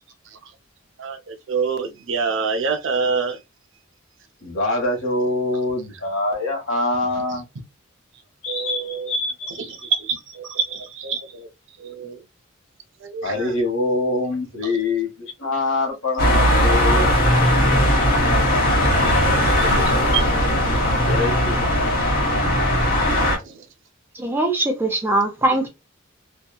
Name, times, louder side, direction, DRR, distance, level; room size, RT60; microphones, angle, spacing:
voice 1, 1.0-3.4 7.3-7.4 8.5-9.1 9.5-11.5 11.8-12.2 13.0-13.5 14.6-14.8 16.9-17.0 19.1-20.2 23.4-23.6, right 5 dB, 65° right, 0.5 m, -27 dB
voice 2, 4.4-7.4 8.4-9.6 13.2-15.1 15.4-17.1 19.5-19.7 21.0-21.6, left 2 dB, 75° left, 1.0 m, -24 dB
sound 1, 16.2-23.4, left 1 dB, 45° left, 1.0 m, -18 dB
voice 3, 24.1-25.7, right 2 dB, 10° right, 0.5 m, -21 dB
2.7 x 2.2 x 2.2 m
head